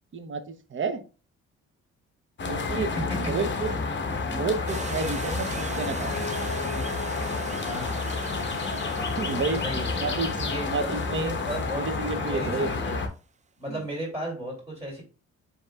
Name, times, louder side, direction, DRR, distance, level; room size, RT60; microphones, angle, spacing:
voice 1, 0.1-1.0 2.5-3.8 4.3-6.3 9.2-9.7 9.9-10.4 10.6-11.4 11.7-12.7 13.7-13.8, right 4 dB, 40° right, 8 dB, 0.9 m, -30 dB
sound 1, 2.4-13.1, left 4 dB, 40° left, 0.9 m, -30 dB
sound 2, 4.7-13.0, right 5 dB, 25° right, 0.5 m, -41 dB
Mallet percussion, 6.1-9.0, equal, 70° left, 0.5 m, -41 dB
voice 2, 7.6-8.1 9.6-10.1 10.4-10.9 11.4-11.9 12.2-13.0 13.6-15.0, right 1 dB, 10° right, -2 dB, 2.4 m, -34 dB
7.8 x 2.9 x 2.3 m, 0.34 s
cardioid pair, 90°, 30 cm